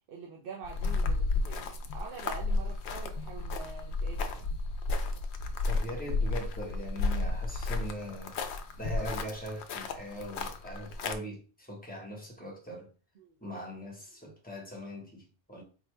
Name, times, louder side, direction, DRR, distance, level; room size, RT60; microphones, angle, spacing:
voice 1, 0.1-4.5 13.1-13.4, right 5 dB, 55° right, 0.8 m, -45 dB
sound 1, 0.6-11.2, left 3 dB, 75° left, 0.9 m, -32 dB
voice 2, 5.7-8.4 8.7-12.9 13.4-15.6, equal, 10° left, 1.2 m, -41 dB
4.4 x 2.8 x 3.3 m
omnidirectional pair, 1.2 m